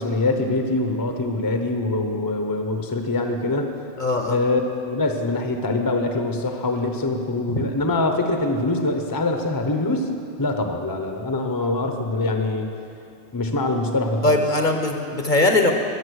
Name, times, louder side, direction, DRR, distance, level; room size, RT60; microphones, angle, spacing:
voice 1, 0.0-3.7 4.2-10.1 10.4-12.7 13.3-14.4, left 2 dB, 20° left, 4 dB, 0.8 m, -24 dB
voice 2, 4.0-4.4 7.5-7.6 14.2-15.7, left 2 dB, 45° left, 4 dB, 1.1 m, -20 dB
21.5 x 7.4 x 6.4 m, 2.5 s
omnidirectional pair, 1.2 m